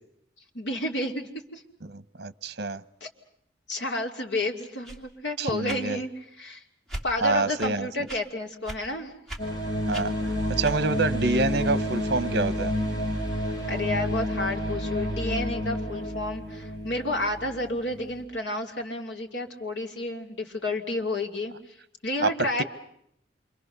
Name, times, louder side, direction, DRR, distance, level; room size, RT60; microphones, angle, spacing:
voice 1, 0.5-1.6 3.0-3.1 3.7-6.6 7.0-9.1 13.7-22.6, left 2 dB, 75° left, 4 dB, 2.7 m, -31 dB
voice 2, 1.9-2.8 5.4-6.0 7.2-7.9 9.9-10.1 10.5-12.7 22.2-22.3 22.6-22.7, right 3 dB, 60° right, 16 dB, 0.9 m, -27 dB
sound 1, 4.8-5.0 5.6-5.8 6.9-7.1 7.6-7.7 8.1-8.2 8.6-8.8 9.3-9.4 9.9-10.1 10.6-10.8, right 1 dB, ahead, 2.7 m, -37 dB
sound 2, 9.4-18.1, equal, 20° left, 4.0 m, -30 dB
27.5 x 24.5 x 6.7 m, 0.74 s
head